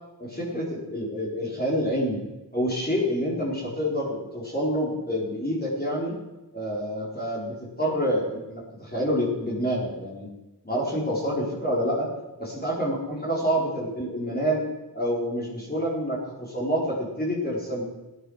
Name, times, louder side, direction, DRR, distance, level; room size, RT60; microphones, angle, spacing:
voice 1, 0.2-2.2 2.5-6.2 6.5-10.3 10.6-12.1 12.4-17.8, equal, 25° left, -4 dB, 4.3 m, -27 dB
15.5 x 10.0 x 6.4 m, 1.1 s
wide cardioid pair, 55°, 41 cm